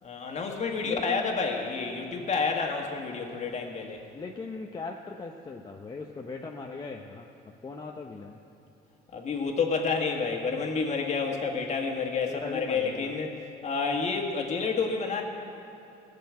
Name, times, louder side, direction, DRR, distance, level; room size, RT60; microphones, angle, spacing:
voice 1, 0.0-4.0 9.1-15.2, left 4 dB, 40° left, 2 dB, 1.8 m, -29 dB
voice 2, 0.8-1.3 4.1-7.3 7.6-8.4 12.3-13.1, left 3 dB, 25° left, 1 dB, 0.8 m, -39 dB
16.0 x 6.8 x 8.5 m, 2.9 s
cardioid pair, 110°, 17 cm